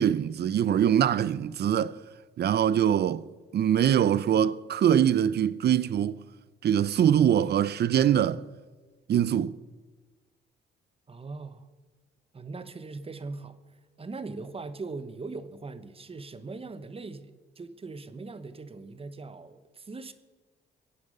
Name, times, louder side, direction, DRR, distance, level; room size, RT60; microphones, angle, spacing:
voice 1, 0.0-2.0 2.4-3.2 3.5-6.2 6.6-8.4 9.1-9.5, right 9 dB, 55° right, 0.6 m, -23 dB
voice 2, 11.1-11.7 12.3-20.1, right 3 dB, 30° right, 1.2 m, -40 dB
23.0 x 8.6 x 5.5 m
cardioid pair, 90°, 20 cm